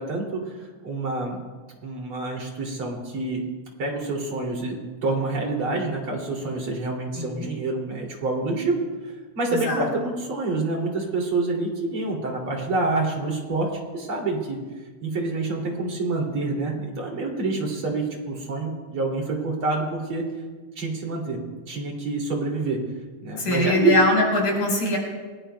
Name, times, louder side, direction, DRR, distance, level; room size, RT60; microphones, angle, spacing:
voice 1, 0.0-1.4 1.8-3.4 3.8-8.7 9.0-13.7 13.9-14.6 15.0-20.2 20.8-21.4 21.7-22.8 23.2-23.9, right 3 dB, 45° right, -1 dB, 3.5 m, -27 dB
voice 2, 23.4-25.0, left 2 dB, 85° left, -2 dB, 6.2 m, -22 dB
28.0 x 19.0 x 2.3 m, 1.4 s
omnidirectional pair, 3.4 m